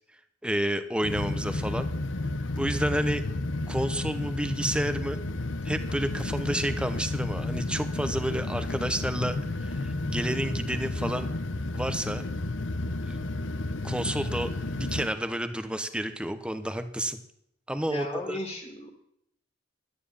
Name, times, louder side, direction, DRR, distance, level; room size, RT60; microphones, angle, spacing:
voice 1, 0.4-1.9 2.6-3.2 3.7-5.2 5.6-11.3 11.7-12.2 13.0-13.2 13.8-17.2 17.7-18.4, right 1 dB, 5° right, 9 dB, 1.0 m, -30 dB
sound 1, 1.0-15.1, left 2 dB, 70° left, 0.8 m, -32 dB
voice 2, 17.9-18.9, left 1 dB, 30° left, 2 dB, 2.1 m, -35 dB
12.0 x 9.5 x 8.7 m, 0.76 s
head